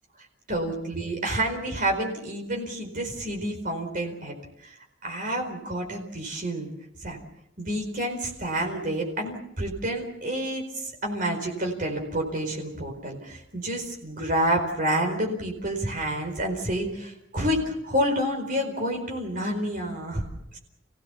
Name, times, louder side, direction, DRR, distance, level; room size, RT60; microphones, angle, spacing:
voice 1, 0.5-4.4 4.6-6.7 7.0-7.2 7.6-20.3 20.5-20.6, right 1 dB, 45° right, 2 dB, 4.6 m, -29 dB
30.0 x 17.5 x 7.0 m, 0.81 s
head